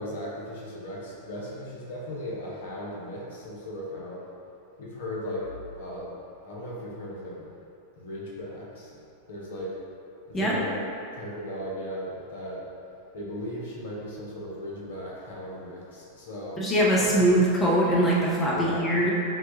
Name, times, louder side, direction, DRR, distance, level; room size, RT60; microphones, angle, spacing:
voice 1, 0.0-4.2 4.8-5.5 5.8-6.2 6.4-7.5 8.0-9.0 9.3-9.8 10.3-10.8 11.1-12.6 13.1-16.6 17.0-17.1 18.5-18.9, equal, 60° left, -5 dB, 0.8 m, -37 dB
voice 2, 16.6-19.1, right 1 dB, 15° left, -5 dB, 0.6 m, -22 dB
5.6 x 2.3 x 2.7 m, 2.6 s
figure-of-eight pair, 90°, 0 cm